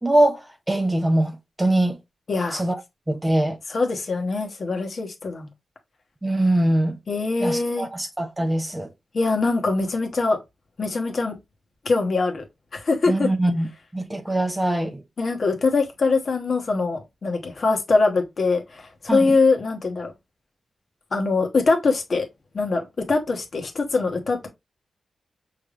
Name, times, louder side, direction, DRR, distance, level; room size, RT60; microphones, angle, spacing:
voice 1, 0.0-2.0 2.5-2.8 3.1-3.6 6.2-7.0 7.4-8.9 13.1-13.7 13.9-15.0 19.1-19.3, right 1 dB, 10° right, 0.7 m, -22 dB
voice 2, 2.3-2.6 3.7-5.5 7.1-7.9 9.1-10.4 10.8-11.3 11.8-12.4 12.7-13.3 15.2-20.1 21.1-22.3 22.5-24.5, left 3 dB, 45° left, 1.1 m, -23 dB
5.9 x 3.4 x 2.4 m
wide cardioid pair, 140°, 0 cm